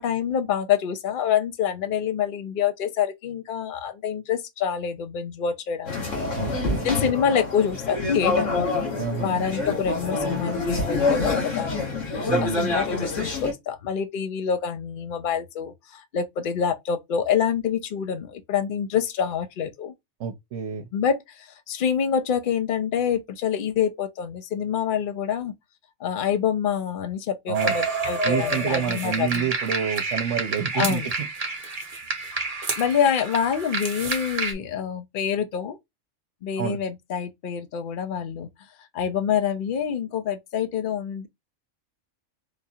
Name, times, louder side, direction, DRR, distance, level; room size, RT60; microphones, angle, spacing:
voice 1, 0.0-6.3 6.8-8.7 9.2-19.9 20.9-25.5 26.0-29.5 30.7-31.1 32.8-35.8 36.4-38.5 38.9-41.3, left 8 dB, 50° left, 0.7 m, -26 dB
sound 1, 5.9-13.5, left 3 dB, 75° left, 2.0 m, -26 dB
voice 2, 6.4-6.9 9.0-9.8 12.3-12.7 20.2-20.9 27.5-27.7 28.2-31.3 36.6-36.8, right 8 dB, 80° right, 1.0 m, -29 dB
sound 2, 27.5-34.5, right 3 dB, 35° right, 0.8 m, -29 dB
4.9 x 2.4 x 2.7 m
omnidirectional pair, 1.3 m